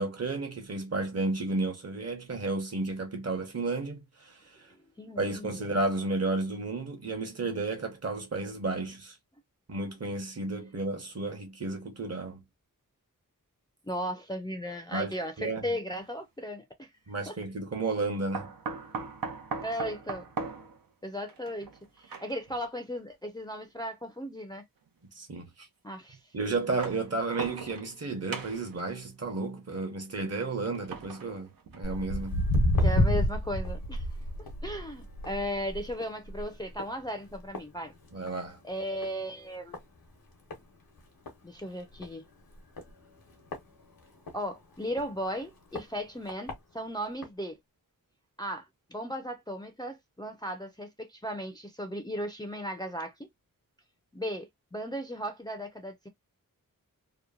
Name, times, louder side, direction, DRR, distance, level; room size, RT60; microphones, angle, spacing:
voice 1, 0.0-4.4 5.2-9.2 9.7-12.4 14.9-15.6 17.1-18.5 25.2-25.7 26.3-32.5 38.1-38.6, right 3 dB, 45° right, 1.0 m, -32 dB
voice 2, 5.0-5.8 13.8-16.9 17.3-17.4 19.6-20.2 21.0-21.7 22.0-24.6 25.8-26.2 32.8-34.1 34.6-37.9 38.6-39.8 41.4-42.2 44.3-47.6 48.4-53.1 54.1-56.1, equal, 10° left, 0.4 m, -36 dB
sound 1, 15.9-16.1 18.3-22.6 23.6-23.7 24.9-25.0 26.6-28.0 28.3-28.8 30.6-32.0 32.5-32.6 33.0-33.1, right 4 dB, 80° right, 0.7 m, -39 dB
Walk footsteps, 31.8-38.5 38.8-39.2 39.7-39.8 40.5-40.6 41.0-41.1 41.3-41.4 41.9-42.1 42.8-44.4 44.9-45.0 45.8-45.9 46.3-46.5 47.2-47.3, left 1 dB, 90° left, 1.0 m, -29 dB
2.9 x 2.1 x 2.4 m
wide cardioid pair, 85°, 34 cm